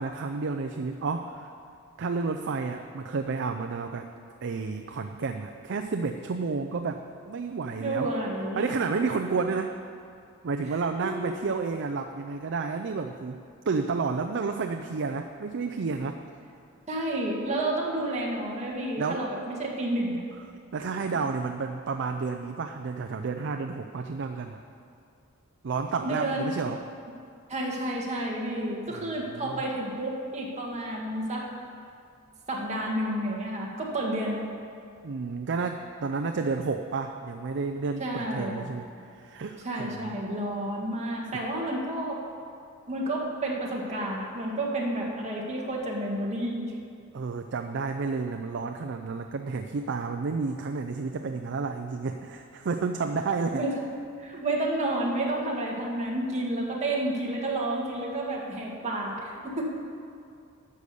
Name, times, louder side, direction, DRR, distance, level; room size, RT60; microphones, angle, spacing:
voice 1, 0.0-1.5 2.0-4.1 4.4-8.2 8.6-9.7 10.4-16.2 19.0-19.2 20.7-24.6 25.6-26.8 28.9-29.6 35.0-38.9 39.1-40.2 47.1-53.6, right 4 dB, 55° right, 6 dB, 0.5 m, -31 dB
voice 2, 7.8-8.7 11.0-11.3 16.9-20.2 26.0-26.4 27.5-31.5 32.5-34.4 38.0-38.6 39.6-42.2 42.9-46.7 53.5-53.7 54.2-59.7, right 1 dB, 30° right, -3 dB, 1.8 m, -30 dB
11.5 x 6.7 x 6.9 m, 2.4 s
head